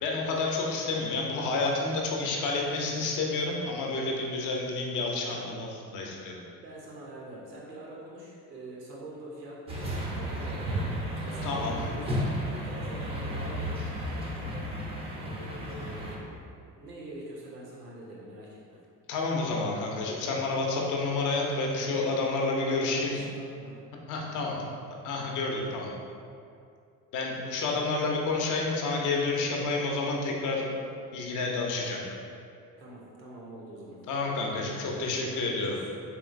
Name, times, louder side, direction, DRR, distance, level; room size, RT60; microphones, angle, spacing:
voice 1, 0.0-6.5 11.4-11.8 19.1-23.2 24.1-24.6 25.0-25.9 27.1-30.7 31.1-32.0 34.1-35.8, left 3 dB, 40° left, -1 dB, 0.6 m, -29 dB
voice 2, 6.6-12.2 12.6-14.7 15.1-16.4 16.8-18.6 22.7-23.8 32.8-34.0 34.9-35.9, right 1 dB, 80° right, -4 dB, 0.8 m, -45 dB
sound 1, 9.7-16.2, equal, 15° right, 0.4 m, -33 dB
3.6 x 3.0 x 2.4 m, 2.4 s
figure-of-eight pair, 55°, 48 cm